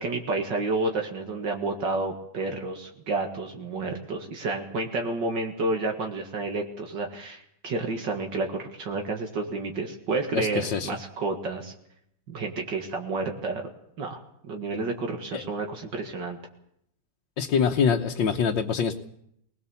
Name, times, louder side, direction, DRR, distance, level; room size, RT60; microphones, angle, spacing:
voice 1, 0.0-11.7 12.3-13.6 14.0-16.4, right 3 dB, 75° right, 3 dB, 2.5 m, -30 dB
voice 2, 10.3-10.9 15.3-15.4 17.4-19.0, left 6 dB, 80° left, 2 dB, 1.7 m, -25 dB
20.5 x 20.0 x 7.1 m, 0.74 s
omnidirectional pair, 2.0 m